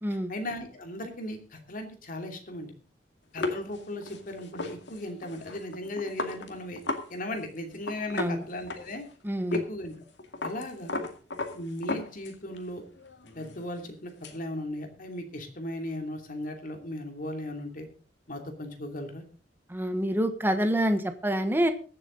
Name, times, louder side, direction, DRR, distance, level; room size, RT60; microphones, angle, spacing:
voice 1, 0.1-2.7 3.3-6.8 7.1-9.0 9.5-9.9 10.4-11.0 11.5-12.8 13.3-17.9 18.3-19.2, left 1 dB, 50° left, 4 dB, 2.8 m, -37 dB
sound 1, 3.4-7.1 7.3-7.5 7.7-9.1 9.5-9.7 9.9-12.6 13.0-14.4, left 2 dB, 70° left, 2.2 m, -35 dB
voice 2, 8.1-8.4 9.2-9.6 19.7-21.7, equal, 10° right, 8 dB, 1.2 m, -27 dB
22.5 x 7.7 x 3.9 m, 0.38 s
head